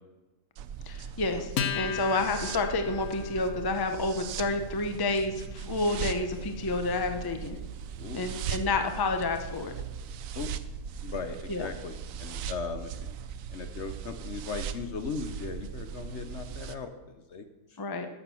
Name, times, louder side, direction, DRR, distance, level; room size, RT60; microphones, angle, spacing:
sound 1, 0.6-16.8, right 7 dB, 65° right, 0.9 m, -39 dB
voice 1, 0.9-7.6 8.1-9.7 11.5-11.7 17.8-18.1, left 3 dB, 20° left, 6 dB, 0.6 m, -29 dB
Acoustic guitar, 1.6-8.4, left 7 dB, 70° left, 1.3 m, -38 dB
voice 2, 8.0-8.5 10.3-10.5 11.0-12.9 13.5-17.8, left 5 dB, 55° left, 7 dB, 1.0 m, -38 dB
11.5 x 7.0 x 7.1 m, 1.1 s
omnidirectional pair, 1.6 m